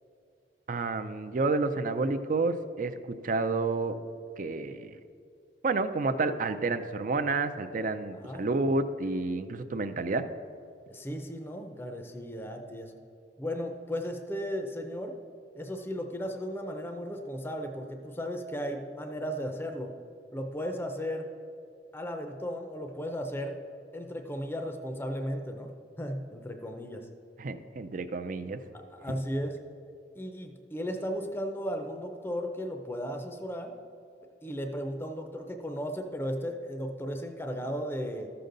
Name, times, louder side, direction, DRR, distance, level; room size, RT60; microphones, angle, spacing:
voice 1, 0.7-4.0 4.4-4.9 5.6-10.2 27.4-28.6 29.1-29.2, right 3 dB, 45° right, 9 dB, 0.5 m, -30 dB
voice 2, 8.1-8.4 10.9-12.9 13.4-15.2 15.5-19.9 20.3-21.3 21.9-23.6 23.9-25.7 26.0-27.1 28.7-29.6 30.2-33.7 34.4-38.3, equal, 10° left, 5 dB, 0.6 m, -35 dB
13.5 x 6.8 x 3.9 m, 2.4 s
head